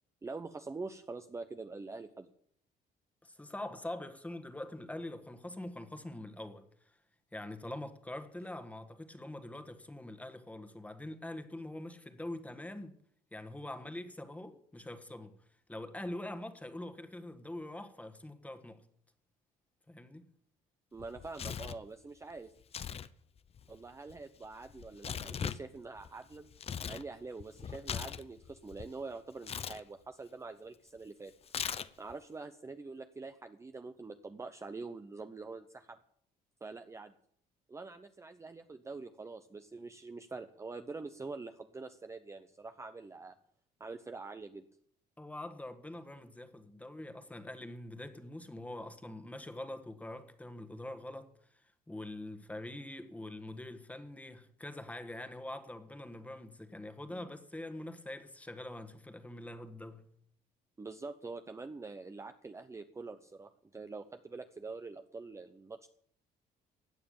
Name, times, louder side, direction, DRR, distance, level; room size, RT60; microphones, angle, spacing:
voice 1, 0.2-2.3 20.9-22.5 23.7-26.5 26.9-31.3 32.0-36.0 36.6-37.1 37.7-43.3 43.8-44.6 57.1-57.3 60.8-65.9, right 3 dB, 15° right, 0.7 m, -45 dB
voice 2, 3.2-7.0 7.3-13.0 13.3-15.4 15.7-18.9 19.9-20.3 45.2-60.1, left 1 dB, 10° left, 1.5 m, -44 dB
Tearing, 21.0-21.8 22.6-23.1 23.4-27.0 27.4-28.9 29.4-29.8 31.5-32.1, left 7 dB, 35° left, 0.7 m, -40 dB
16.5 x 9.2 x 7.1 m
cardioid pair, 110°, 17 cm